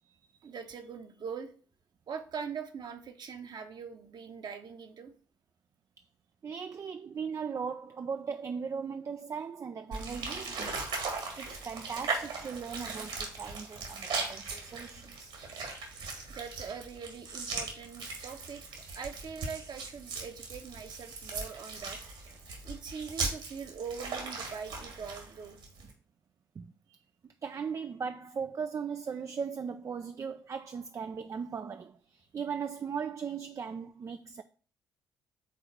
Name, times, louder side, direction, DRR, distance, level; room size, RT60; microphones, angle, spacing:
voice 1, 0.4-1.5 2.1-5.1 16.3-18.6 18.9-22.0 22.6-25.6 26.9-27.0, right 6 dB, 50° right, 1.0 m, -42 dB
voice 2, 6.4-10.9 11.4-15.3 26.6-26.7 27.2-34.4, right 6 dB, 35° right, 0.4 m, -38 dB
sound 1, 9.9-25.9, right 4 dB, 65° right, 1.7 m, -39 dB
5.2 x 3.9 x 5.8 m
figure-of-eight pair, 45°, 10 cm